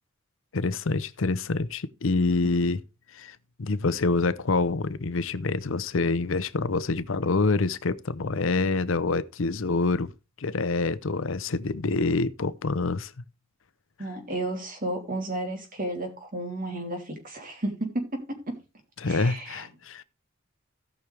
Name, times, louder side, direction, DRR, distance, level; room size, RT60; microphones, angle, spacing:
voice 1, 0.5-2.8 3.1-10.1 10.4-13.1 19.0-20.0, left 3 dB, 70° left, 0.7 m, -26 dB
voice 2, 14.0-18.6 19.0-19.7, right 1 dB, 45° right, 3.2 m, -33 dB
16.5 x 6.2 x 3.4 m
head